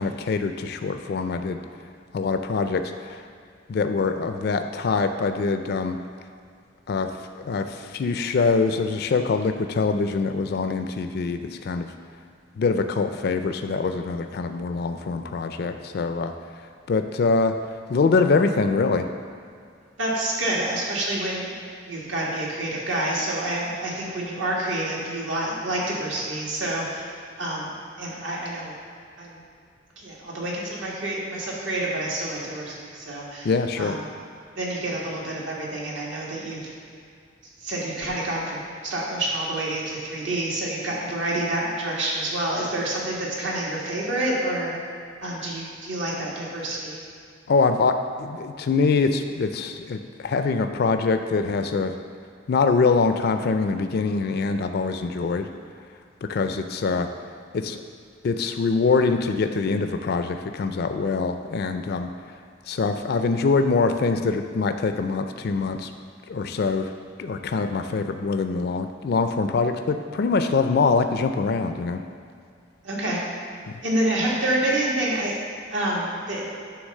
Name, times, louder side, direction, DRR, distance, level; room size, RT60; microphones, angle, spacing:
voice 1, 0.0-1.6 2.1-3.2 3.7-6.0 6.9-7.1 7.4-11.9 12.6-16.3 16.9-17.5 17.9-19.1 33.4-34.0 47.5-52.0 52.5-55.5 56.2-57.1 57.5-57.8 58.2-62.1 62.7-65.9 66.3-66.9 67.2-72.0 73.7-73.8, left 4 dB, 55° left, 7 dB, 0.4 m, -24 dB
voice 2, 20.0-21.5 21.9-27.7 28.0-28.7 29.2-29.4 30.0-33.5 33.8-34.0 34.6-36.6 37.6-44.7 45.2-47.0 72.8-73.2 73.8-75.3 75.7-76.4, right 1 dB, 75° right, -4 dB, 1.7 m, -28 dB
9.6 x 3.3 x 6.5 m, 2.3 s
head